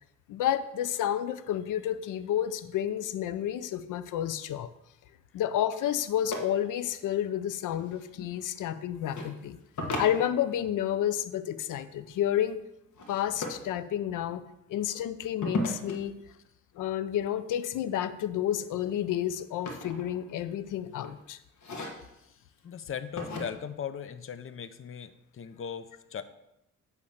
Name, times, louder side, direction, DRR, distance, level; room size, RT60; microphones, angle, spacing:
voice 1, 0.3-4.7 5.3-9.6 9.8-12.6 13.1-14.4 14.7-16.1 16.7-21.4, left 10 dB, 85° left, 13 dB, 0.5 m, -30 dB
sound 1, 6.2-6.4 7.7-8.3 9.1-9.3 9.7-10.8 13.0-13.6 15.4-16.0 17.9-18.2 18.6-20.5 20.9-21.2 21.6-22.2 23.2-23.4, left 2 dB, 65° left, 1.5 m, -35 dB
voice 2, 21.9-26.2, left 8 dB, 45° left, 12 dB, 0.6 m, -39 dB
8.6 x 3.2 x 6.4 m, 0.86 s
cardioid pair, 80°, 31 cm